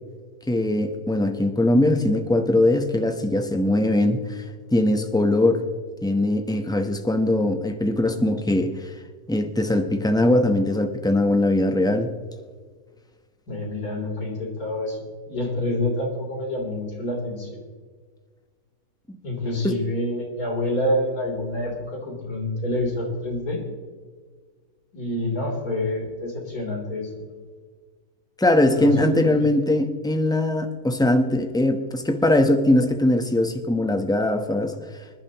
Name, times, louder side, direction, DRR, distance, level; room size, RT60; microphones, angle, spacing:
voice 1, 0.5-4.4 4.7-5.6 6.0-8.9 9.3-12.1 19.1-19.2 19.6-19.8 28.4-34.7, left 1 dB, 5° left, 6 dB, 0.8 m, -21 dB
voice 2, 13.5-17.6 19.2-23.6 24.9-27.3 28.7-29.5, left 1 dB, 70° left, -2 dB, 4.1 m, -27 dB
25.5 x 11.0 x 3.0 m, 1.6 s
omnidirectional pair, 1.6 m